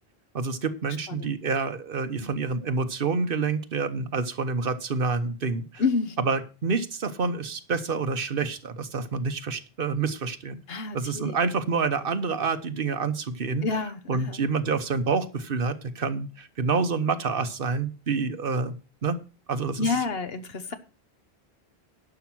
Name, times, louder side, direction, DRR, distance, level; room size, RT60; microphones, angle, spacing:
voice 1, 0.3-5.8 6.2-10.6 10.9-13.7 14.1-18.8 19.0-19.2 19.5-19.9, right 4 dB, 60° right, 10 dB, 1.2 m, -28 dB
voice 2, 5.8-6.4 10.7-11.4 13.6-14.4 19.8-20.7, left 4 dB, 70° left, 10 dB, 1.3 m, -29 dB
11.5 x 5.9 x 6.1 m, 0.33 s
omnidirectional pair, 1.1 m